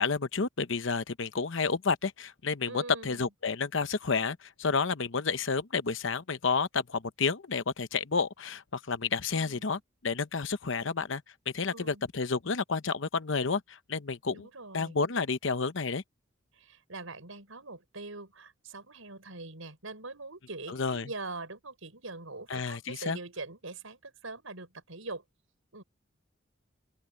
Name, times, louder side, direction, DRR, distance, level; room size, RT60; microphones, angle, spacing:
voice 1, 0.0-11.2 11.5-14.5 14.7-16.0 20.7-21.1 22.5-23.2, left 4 dB, 65° left, 0.9 m, -30 dB
voice 2, 2.7-3.3 9.3-9.7 11.7-12.0 14.3-15.0 16.5-25.2 25.7-25.8, right 3 dB, 80° right, 6.0 m, -43 dB
open air
head